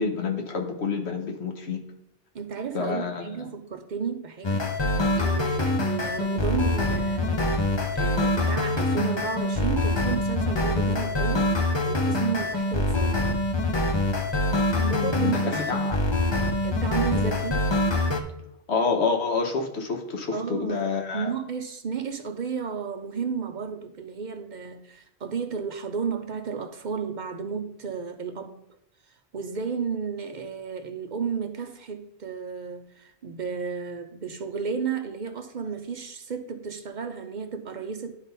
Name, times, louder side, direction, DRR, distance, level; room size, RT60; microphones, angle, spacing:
voice 1, 0.0-1.8 2.7-3.5 14.8-16.1 18.7-21.3, left 4 dB, 80° left, 1.3 m, -28 dB
voice 2, 2.3-7.6 7.9-11.5 11.8-13.3 14.8-15.6 16.6-17.7 20.3-20.8 21.1-28.6 29.3-38.1, right 6 dB, 50° right, 0.6 m, -33 dB
sound 1, 4.4-18.2, left 2 dB, 30° left, 0.6 m, -25 dB
10.5 x 3.8 x 4.0 m
omnidirectional pair, 1.1 m